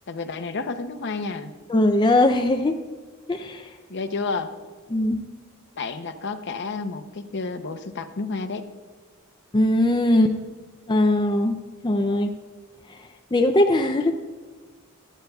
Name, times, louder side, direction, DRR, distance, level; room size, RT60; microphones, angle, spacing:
voice 1, 0.1-1.5 3.9-4.5 5.7-8.6, left 4 dB, 55° left, 9 dB, 0.7 m, -30 dB
voice 2, 1.7-2.8 3.3-3.7 4.9-5.2 9.5-10.4 10.9-12.3 13.3-14.1, left 1 dB, 20° left, 5 dB, 0.4 m, -20 dB
24.5 x 9.2 x 2.3 m, 1.4 s
head